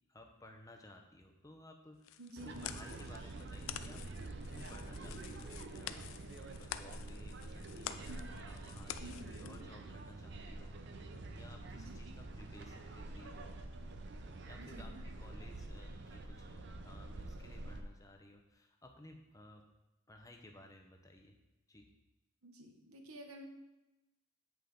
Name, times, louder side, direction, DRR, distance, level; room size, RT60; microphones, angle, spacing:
voice 1, 0.1-4.0 4.5-6.1 6.4-10.8 11.3-13.6 14.4-19.6 20.1-21.4 21.7-21.9, left 1 dB, 15° left, 3 dB, 0.8 m, -57 dB
sound 1, 2.0-9.6, left 11 dB, 65° left, 0.4 m, -49 dB
voice 2, 2.2-2.7 8.1-8.2 9.0-9.6 11.7-12.0 14.6-15.0 22.4-23.5, right 1 dB, 80° right, 4 dB, 1.0 m, -51 dB
sound 2, 2.4-17.8, right 2 dB, 50° right, 0.6 m, -47 dB
8.5 x 5.6 x 3.9 m, 0.98 s
head